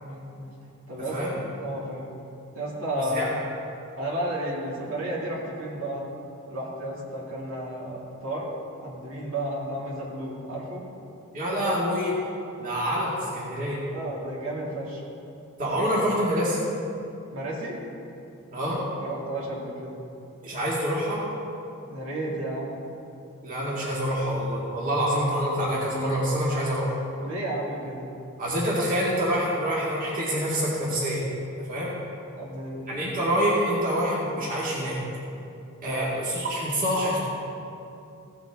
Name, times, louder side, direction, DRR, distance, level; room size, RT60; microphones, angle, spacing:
voice 1, 0.0-0.5 0.9-1.2 1.6-2.1 2.5-3.3 3.9-6.1 6.5-8.5 8.8-10.8 13.9-15.0 15.6-15.8 17.3-17.8 19.0-20.0 21.9-22.8 27.2-28.1 32.4-33.0 35.8-36.1, right 1 dB, 65° right, -5 dB, 2.4 m, -32 dB
voice 2, 11.3-12.1 12.6-13.8 15.6-16.6 18.5-18.8 20.4-21.2 23.4-26.9 28.4-31.2 31.7-31.9 32.9-35.0 35.8-37.2, equal, 40° right, -7 dB, 2.0 m, -26 dB
16.5 x 7.6 x 3.6 m, 2.7 s
head